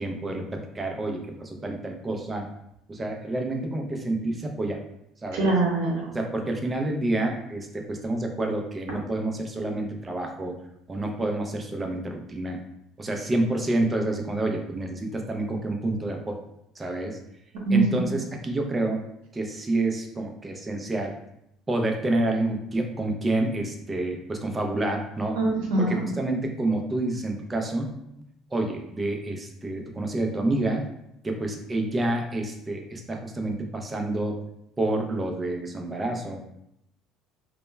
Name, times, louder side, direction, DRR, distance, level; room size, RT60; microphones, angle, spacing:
voice 1, 0.0-2.5 2.9-4.8 5.2-5.6 6.1-10.6 10.9-12.6 13.0-16.4 16.8-17.2 17.7-19.1 19.3-21.2 21.7-25.4 25.8-27.9 28.5-30.9 31.2-34.4 34.8-36.4, right 2 dB, 20° right, 3 dB, 0.4 m, -28 dB
voice 2, 5.4-6.1 17.7-17.8 25.3-26.0, right 3 dB, 85° right, -3 dB, 0.7 m, -23 dB
2.1 x 2.0 x 3.2 m, 0.79 s
cardioid pair, 110°, 0 cm